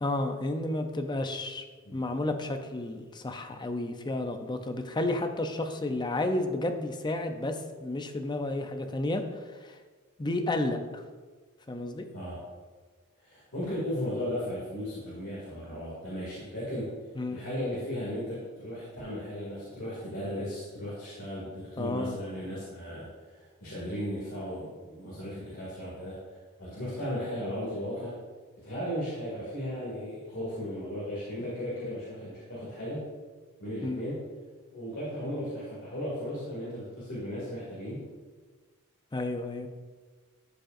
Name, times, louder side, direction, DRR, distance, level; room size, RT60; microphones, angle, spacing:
voice 1, 0.0-1.6 1.9-9.8 10.2-11.0 11.7-12.0 17.2-17.4 21.8-22.2 33.8-34.0 39.1-39.7, left 2 dB, 20° left, 6 dB, 0.5 m, -31 dB
voice 2, 13.2-16.9 17.3-26.2 26.6-28.2 28.6-33.1 33.6-34.2 34.7-38.0, equal, 65° left, -8 dB, 2.3 m, -36 dB
12.5 x 5.3 x 2.5 m, 1.4 s
head